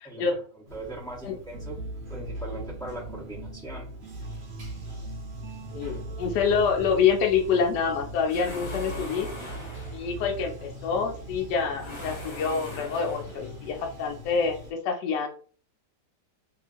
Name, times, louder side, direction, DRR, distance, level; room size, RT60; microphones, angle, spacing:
voice 1, 0.0-0.4 1.2-1.4 5.7-9.3 9.9-15.3, left 6 dB, 75° left, 2 dB, 1.1 m, -26 dB
voice 2, 0.5-1.8 2.1-3.9, right 1 dB, 5° left, -6 dB, 0.7 m, -40 dB
Bathtub (filling or washing), 0.7-14.7, equal, 40° right, 0.8 m, -44 dB
sound 1, 1.5-11.1, right 1 dB, 75° right, 0.7 m, -40 dB
Laser Machine Diagnostic, 8.3-10.1 11.7-13.5, left 2 dB, 40° left, 0.4 m, -41 dB
2.9 x 2.6 x 2.5 m, 0.42 s
omnidirectional pair, 1.9 m